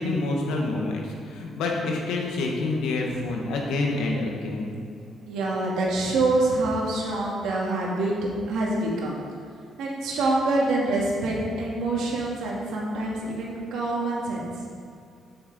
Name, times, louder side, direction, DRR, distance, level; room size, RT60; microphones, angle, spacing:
voice 1, 0.0-4.7, left 2 dB, 90° left, 0 dB, 1.7 m, -27 dB
voice 2, 5.3-9.1 9.8-14.5, right 2 dB, 85° right, -3 dB, 2.1 m, -26 dB
8.4 x 7.1 x 5.4 m, 2.3 s
cardioid pair, 120°, 0 cm